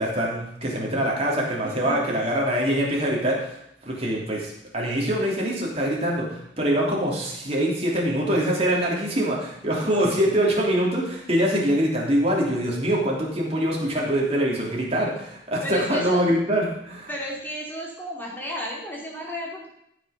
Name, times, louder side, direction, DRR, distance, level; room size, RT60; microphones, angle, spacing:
voice 1, 0.0-17.1, equal, 35° right, -3 dB, 3.1 m, -24 dB
voice 2, 1.6-2.0 9.8-9.9 15.6-16.2 17.1-19.7, equal, 10° left, -3 dB, 2.6 m, -33 dB
14.5 x 6.2 x 6.0 m, 0.76 s
head